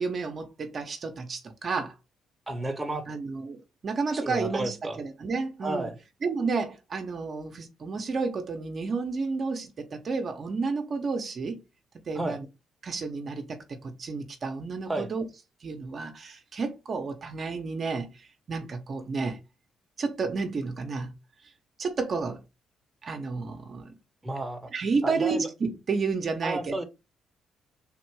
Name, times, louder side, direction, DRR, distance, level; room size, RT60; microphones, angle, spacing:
voice 1, 0.0-1.9 3.1-5.9 6.2-11.6 12.1-12.4 12.8-15.2 15.6-19.4 20.0-21.1 21.8-22.4 23.0-23.9 24.7-26.8, right 4 dB, 45° right, 0.7 m, -31 dB
voice 2, 2.5-3.0 4.1-5.0 5.6-5.9 12.1-12.4 14.9-15.1 24.2-24.7 25.0-25.4 26.4-26.8, right 1 dB, 15° right, 0.8 m, -31 dB
3.6 x 2.5 x 4.6 m
cardioid pair, 90°, 0 cm